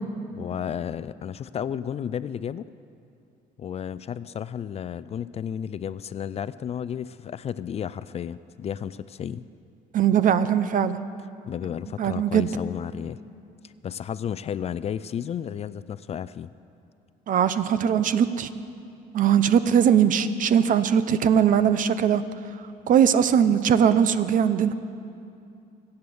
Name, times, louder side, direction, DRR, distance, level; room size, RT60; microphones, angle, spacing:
voice 1, 0.3-2.7 3.6-9.5 11.5-13.2 13.6-16.5, left 8 dB, 40° left, 16 dB, 0.4 m, -32 dB
voice 2, 9.9-11.0 12.0-12.5 17.3-18.5 19.1-22.2 22.9-24.7, right 8 dB, 50° right, 13 dB, 0.7 m, -20 dB
24.0 x 8.0 x 7.0 m, 2.6 s
cardioid pair, 110°, 17 cm